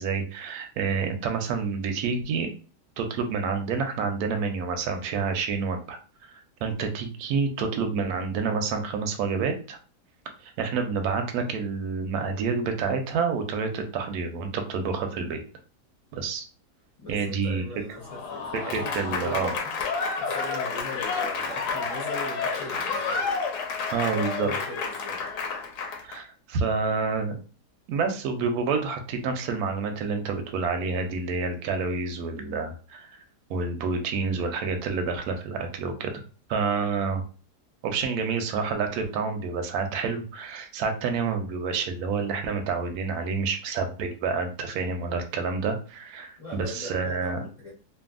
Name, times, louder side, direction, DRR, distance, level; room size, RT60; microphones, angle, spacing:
voice 1, 0.0-2.5 3.0-6.0 6.3-9.8 10.4-15.4 16.1-16.4 17.1-17.6 18.7-19.5 23.9-24.5 26.0-27.4 27.9-33.2 33.5-36.2 36.5-37.2 37.8-47.4, right 5 dB, 75° right, 5 dB, 1.0 m, -28 dB
voice 2, 17.0-19.7 20.2-23.2 24.0-25.2 46.4-47.7, left 1 dB, 30° left, -6 dB, 0.6 m, -40 dB
Applause / Crowd, 18.0-26.2, left 5 dB, 80° left, 1.2 m, -30 dB
2.6 x 2.6 x 2.4 m, 0.38 s
omnidirectional pair, 1.8 m